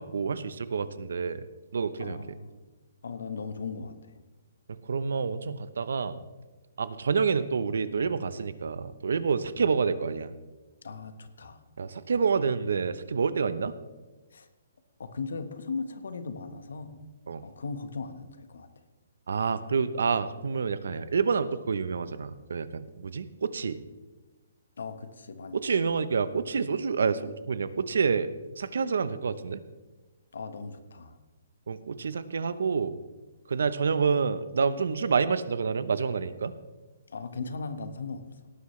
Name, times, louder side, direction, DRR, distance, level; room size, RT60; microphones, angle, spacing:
voice 1, 0.0-1.5 1.7-2.2 4.7-6.2 6.8-10.3 11.8-13.7 17.3-17.4 19.3-23.8 25.5-28.3 28.6-29.6 31.7-33.0 33.5-36.5, right 5 dB, 75° right, 14 dB, 0.8 m, -28 dB
voice 2, 2.0-2.5 3.0-4.2 9.6-9.7 10.8-11.6 14.3-14.5 15.0-17.0 17.4-18.7 24.8-25.9 30.3-31.2 37.1-38.3, left 4 dB, 80° left, 9 dB, 1.2 m, -38 dB
18.0 x 9.8 x 3.2 m, 1.2 s
hypercardioid pair, 170°, 0 cm